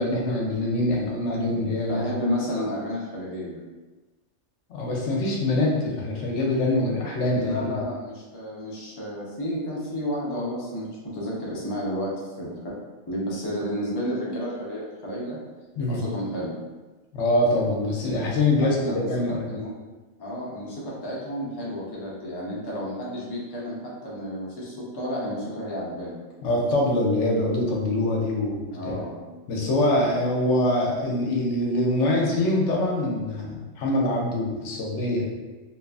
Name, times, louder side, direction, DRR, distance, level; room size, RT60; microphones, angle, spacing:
voice 1, 0.0-2.1 4.7-7.7 15.8-16.0 17.1-19.6 26.4-29.0 29.5-35.3, left 1 dB, 75° left, -1 dB, 0.9 m, -24 dB
voice 2, 1.5-3.6 7.3-12.8 13.1-15.4 15.8-16.6 18.8-19.7 20.2-26.2 28.7-29.2 29.9-30.1, equal, 30° left, -6 dB, 0.4 m, -31 dB
2.8 x 2.3 x 2.3 m, 1.2 s
omnidirectional pair, 1.3 m